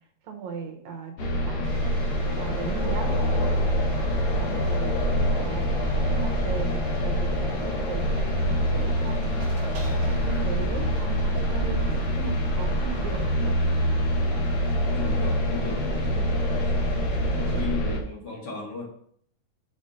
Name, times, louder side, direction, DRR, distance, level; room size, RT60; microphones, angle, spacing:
voice 1, 0.2-1.9 2.3-3.1 4.4-5.0 5.3-5.7 6.1-9.4 10.1-11.8 12.2-13.6 16.9-17.1 17.5-17.8, right 6 dB, 80° right, 4 dB, 2.4 m, -37 dB
sound 1, 1.2-18.0, equal, 65° left, 2.3 m, -25 dB
sound 2, 1.6-17.6, right 3 dB, 60° right, 2.1 m, -42 dB
voice 2, 3.9-4.5 14.9-16.7 17.3-18.9, left 3 dB, 40° left, -3 dB, 2.1 m, -36 dB
7.1 x 4.4 x 5.4 m, 0.64 s
omnidirectional pair, 3.3 m